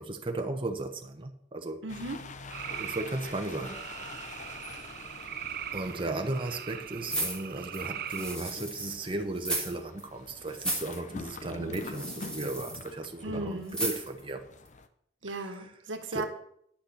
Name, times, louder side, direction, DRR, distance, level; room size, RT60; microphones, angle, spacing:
voice 1, 0.0-1.8 2.7-3.8 4.3-4.5 5.7-14.5 15.4-15.7 16.1-16.2, right 2 dB, 30° right, 0.9 m, -35 dB
voice 2, 1.8-2.3 13.2-13.8 15.2-16.3, right 2 dB, 85° right, 1.5 m, -36 dB
sound 1, 1.9-14.9, left 3 dB, 40° left, 0.8 m, -46 dB
sound 2, 2.5-8.4, right 9 dB, 55° right, 0.7 m, -40 dB
sound 3, 7.0-9.0 9.4-9.7 10.0-10.1 10.5-11.0 11.7-12.9 13.7-14.2 14.7-14.8, right 1 dB, 5° left, 3.1 m, -34 dB
10.0 x 6.5 x 7.1 m
head